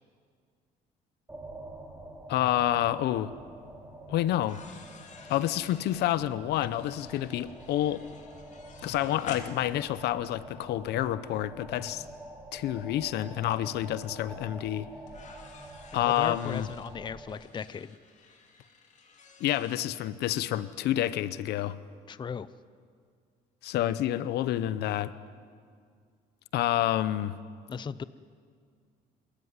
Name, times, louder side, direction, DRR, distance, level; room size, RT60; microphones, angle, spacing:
sound 1, 1.3-17.4, right 1 dB, 15° right, 3.2 m, -47 dB
voice 1, 2.3-3.3 4.1-4.6 5.3-8.0 8.8-12.0 12.5-14.9 15.9-16.7 19.4-21.8 23.6-25.1 26.5-27.3, left 13 dB, 75° left, 15 dB, 0.8 m, -28 dB
sound 2, 4.3-10.3 11.5-11.6 13.4-13.5 13.8-13.9 15.1-19.8, left 5 dB, 45° left, 2.8 m, -50 dB
voice 2, 16.0-18.0 22.1-22.5 27.7-28.0, left 6 dB, 25° left, 16 dB, 0.6 m, -37 dB
26.5 x 13.5 x 9.7 m, 2.1 s
cardioid pair, 110°, 17 cm